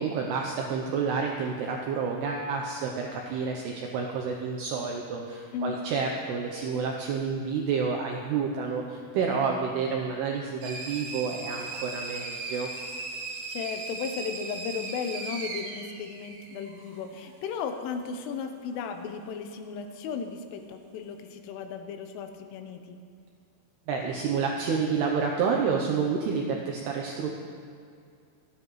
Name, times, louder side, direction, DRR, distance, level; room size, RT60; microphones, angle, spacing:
voice 1, 0.0-12.7 23.9-27.3, right 5 dB, 80° right, 1 dB, 2.3 m, -29 dB
sound 1, 10.6-17.0, right 3 dB, 60° right, 3.1 m, -38 dB
voice 2, 13.5-23.0, left 6 dB, 80° left, 6 dB, 3.3 m, -35 dB
27.5 x 10.0 x 3.2 m, 2.4 s
omnidirectional pair, 5.7 m